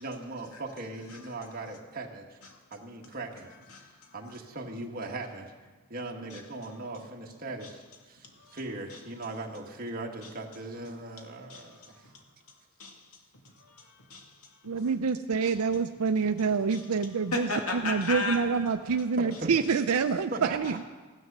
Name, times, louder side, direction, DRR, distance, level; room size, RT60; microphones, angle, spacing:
voice 1, 0.0-2.4 2.7-3.5 4.1-5.5 5.9-8.2 8.5-12.1 19.2-19.5 20.3-20.8, right 2 dB, 40° right, 1 dB, 1.5 m, -39 dB
voice 2, 3.7-4.2 6.3-6.4 7.6-7.7 8.2-8.6 8.9-9.0 10.2-10.3 11.5-12.2 12.8-13.1 13.3-14.7 15.4-15.5 16.7-16.9 17.3-18.4, left 3 dB, 85° left, 1 dB, 2.4 m, -37 dB
voice 3, 14.6-17.5 17.8-20.8, right 5 dB, 90° right, 8 dB, 0.5 m, -27 dB
15.0 x 11.0 x 6.7 m, 1.3 s
head